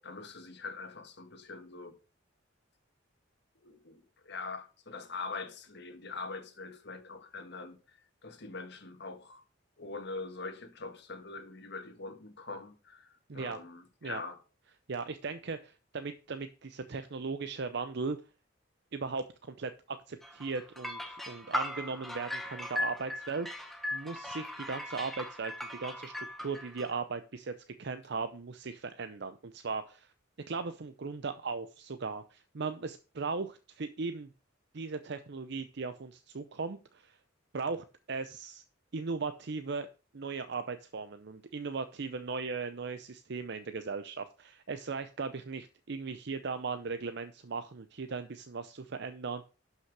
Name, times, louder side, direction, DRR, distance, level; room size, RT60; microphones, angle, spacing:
voice 1, 0.0-2.0 3.6-9.4 9.8-14.4, left 3 dB, 60° left, 1.6 m, -43 dB
voice 2, 14.9-18.2 18.9-30.1 30.5-34.3 34.7-37.2 37.5-38.6 38.9-39.9 40.1-49.4, right 4 dB, 60° right, 0.6 m, -38 dB
sound 1, 20.2-26.9, left 1 dB, ahead, 1.2 m, -38 dB
11.5 x 5.7 x 4.7 m
head